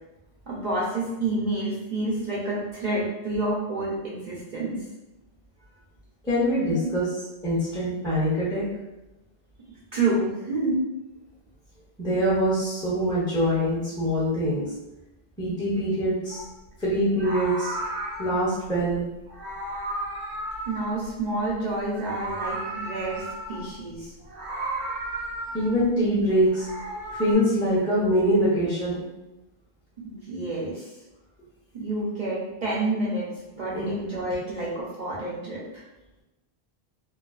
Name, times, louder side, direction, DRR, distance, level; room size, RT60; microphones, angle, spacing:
voice 1, 0.5-4.8 6.7-6.9 9.9-10.8 20.7-24.1 30.0-30.9 31.7-33.3 33.6-35.8, right 2 dB, 55° right, -6 dB, 0.5 m, -29 dB
voice 2, 6.2-7.1 7.4-8.7 12.0-14.7 15.4-16.4 16.8-17.7 18.2-19.1 25.5-26.7 27.1-29.0 33.7-33.9, equal, 5° left, -7 dB, 0.4 m, -24 dB
Meow, 16.3-16.5 17.1-18.6 19.3-21.5 21.8-23.7 24.3-25.8 26.4-27.3, right 1 dB, 90° right, 0.9 m, -34 dB
2.3 x 2.3 x 2.3 m, 0.97 s
omnidirectional pair, 1.1 m